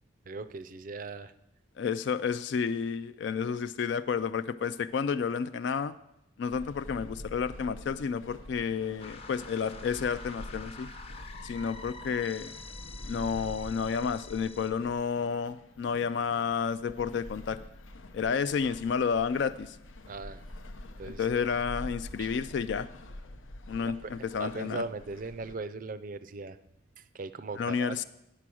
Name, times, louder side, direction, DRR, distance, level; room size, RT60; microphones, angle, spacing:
voice 1, 0.3-1.3 20.1-20.4 21.0-21.3 21.8-22.3 23.8-26.6 27.0-28.0, right 3 dB, 45° right, 13 dB, 0.4 m, -39 dB
voice 2, 1.8-5.9 6.4-10.9 11.4-12.5 13.1-17.6 18.1-19.8 21.0-22.9 23.7-24.8 27.6-28.0, left 6 dB, 60° left, 12 dB, 0.3 m, -31 dB
sound 1, 6.5-25.6, left 1 dB, 85° left, 0.7 m, -46 dB
sound 2, 9.0-14.7, left 4 dB, 30° left, 0.7 m, -47 dB
8.5 x 7.6 x 6.1 m, 0.85 s
head